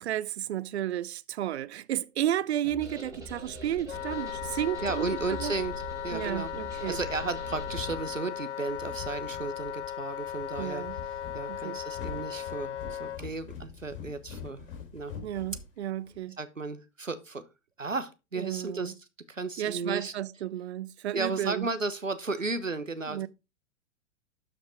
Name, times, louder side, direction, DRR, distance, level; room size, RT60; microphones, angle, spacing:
voice 1, 0.0-5.1 5.4-5.5 6.1-7.0 10.6-11.0 11.5-11.8 15.2-16.4 18.4-18.9 19.6-21.7 23.1-23.3, right 12 dB, 60° right, 0.6 m, -32 dB
sound 1, 2.6-7.8, equal, 10° right, 4.0 m, -42 dB
Wind instrument woodwind instrument, 3.9-13.2, left 10 dB, 65° left, 0.6 m, -37 dB
voice 2, 4.8-5.7 6.0-6.5 6.9-10.8 11.3-14.7 14.9-15.1 16.4-17.4 17.8-18.9 19.3-20.1 21.1-23.3, right 3 dB, 90° right, 1.1 m, -34 dB
sound 2, 7.6-16.2, left 6 dB, 45° left, 4.0 m, -44 dB
12.0 x 5.2 x 4.6 m
figure-of-eight pair, 105°, 38 cm